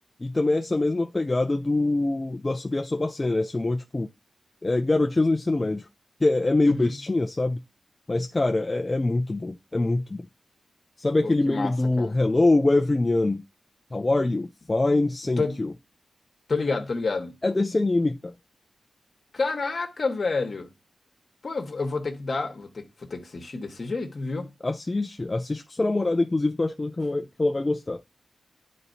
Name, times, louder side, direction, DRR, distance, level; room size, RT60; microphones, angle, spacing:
voice 1, 0.2-4.1 4.6-5.9 6.2-7.6 8.1-10.2 11.0-13.4 13.9-15.7 17.4-18.3 24.6-28.0, left 2 dB, 25° left, 0.4 m, -24 dB
voice 2, 11.2-12.1 15.4-15.5 16.5-17.3 19.3-20.7 21.4-24.5, left 3 dB, 50° left, 1.3 m, -29 dB
11.0 x 4.1 x 2.7 m
wide cardioid pair, 100°, 0 cm